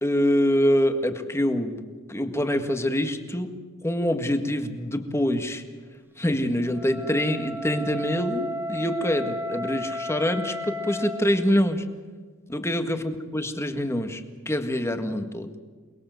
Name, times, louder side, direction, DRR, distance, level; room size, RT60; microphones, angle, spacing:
voice 1, 0.0-3.6 3.8-5.6 6.2-11.8 12.5-15.6, equal, 10° left, 7 dB, 1.8 m, -25 dB
Wind instrument woodwind instrument, 6.6-11.3, left 1 dB, 10° right, 1.4 m, -33 dB
28.5 x 21.0 x 7.8 m, 1.5 s
head